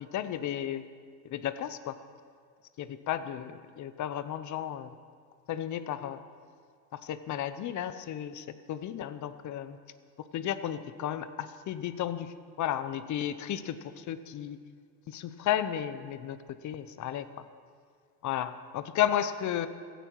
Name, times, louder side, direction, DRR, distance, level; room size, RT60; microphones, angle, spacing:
voice 1, 0.1-0.8 1.3-2.0 2.8-4.9 5.5-6.2 6.9-9.8 10.3-14.6 15.1-16.4 16.6-17.3 18.2-19.7, left 11 dB, 40° left, 13 dB, 0.8 m, -33 dB
16.0 x 15.5 x 4.7 m, 2.1 s
supercardioid pair, 125°, 47 cm